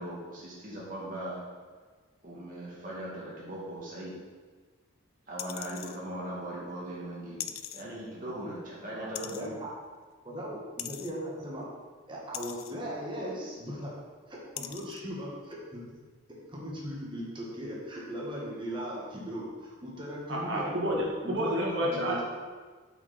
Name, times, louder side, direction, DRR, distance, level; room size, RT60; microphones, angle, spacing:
voice 1, 0.0-1.4 2.2-4.1 5.3-7.4 7.7-9.6, right 1 dB, 40° right, -6 dB, 2.3 m, -39 dB
sound 1, 5.4-6.0 7.4-7.8 9.1-9.5 10.8-11.1 12.3-12.7 13.8-13.9 14.6-15.0 15.5-15.6, left 11 dB, 85° left, 0.5 m, -40 dB
voice 2, 8.9-9.7 10.2-11.6 12.1-13.9 14.3-15.8 16.5-20.9 21.2-22.2, equal, 25° right, -4 dB, 1.7 m, -38 dB
voice 3, 20.3-22.2, equal, 65° right, -3 dB, 2.0 m, -29 dB
8.1 x 6.2 x 4.3 m, 1.5 s
head